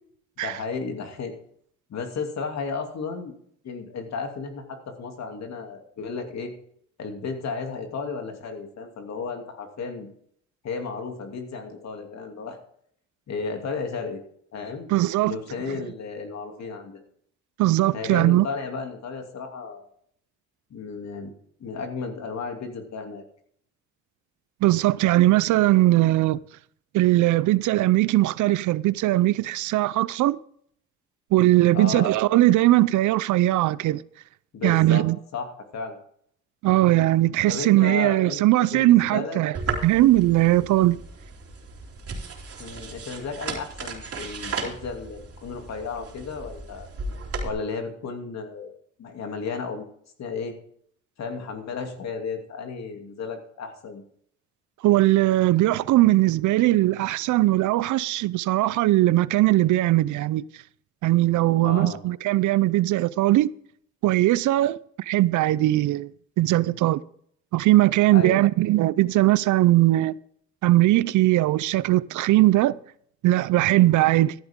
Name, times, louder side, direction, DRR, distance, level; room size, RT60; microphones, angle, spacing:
voice 1, 0.4-1.3 1.9-3.3 3.6-6.5 7.0-10.1 10.6-12.6 13.3-14.2 14.5-14.9 15.2-17.0 17.9-19.8 20.7-21.3 21.6-23.2 31.7-32.1 34.5-35.1 35.3-36.0 37.5-39.4 42.6-46.9 47.4-48.7 49.0-49.9 50.2-50.6 51.2-54.0 61.6-62.0 68.1-68.4, left 5 dB, 60° left, 2.7 m, -33 dB
voice 2, 14.9-15.4 17.6-18.5 24.6-26.4 26.9-30.4 31.3-34.0 34.6-35.2 36.6-39.5 39.8-41.0 54.8-60.4 61.0-63.5 64.0-66.1 66.4-67.0 67.5-70.1 70.6-72.8 73.2-74.3, right 16 dB, 75° right, 0.5 m, -20 dB
sound 1, 39.5-47.5, right 4 dB, 50° right, 3.4 m, -35 dB
14.0 x 12.0 x 3.6 m
cardioid pair, 90°, 30 cm